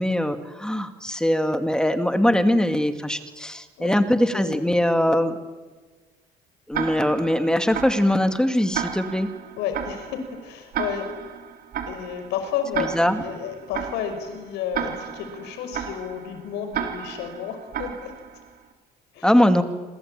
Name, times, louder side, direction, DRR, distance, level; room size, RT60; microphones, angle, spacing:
voice 1, 0.0-5.4 6.7-9.3 12.9-13.2 19.2-19.6, left 1 dB, 5° left, 8 dB, 2.3 m, -21 dB
voice 2, 4.3-4.8 5.1-5.2 9.6-11.1 11.9-18.2 19.1-19.3, left 8 dB, 90° left, 7 dB, 5.5 m, -32 dB
Tick-tock, 6.7-18.6, right 8 dB, 65° right, 4.3 m, -34 dB
26.5 x 23.5 x 9.0 m, 1.3 s
cardioid pair, 110°, 17 cm